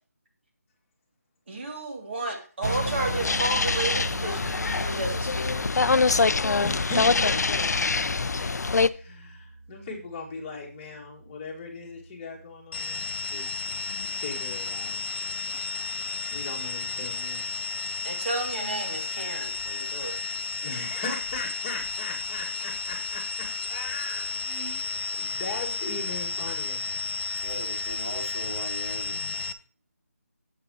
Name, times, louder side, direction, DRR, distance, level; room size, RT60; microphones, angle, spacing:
voice 1, 1.5-5.7 18.0-20.2, right 2 dB, 45° right, 2.6 m, -32 dB
sound 1, 2.6-8.9, left 4 dB, 85° left, 0.5 m, -24 dB
sound 2, 2.6-12.7, right 2 dB, 90° right, 1.4 m, -39 dB
voice 2, 6.4-7.8 8.1-8.6 8.8-15.0 16.3-17.5 20.6-24.9 25.2-26.8, left 3 dB, 15° left, 2.0 m, -38 dB
sound 3, 12.7-29.5, left 4 dB, 40° left, 0.6 m, -32 dB
voice 3, 27.4-29.4, right 1 dB, 60° right, 3.7 m, -39 dB
10.5 x 7.5 x 2.9 m
figure-of-eight pair, 170°, 9 cm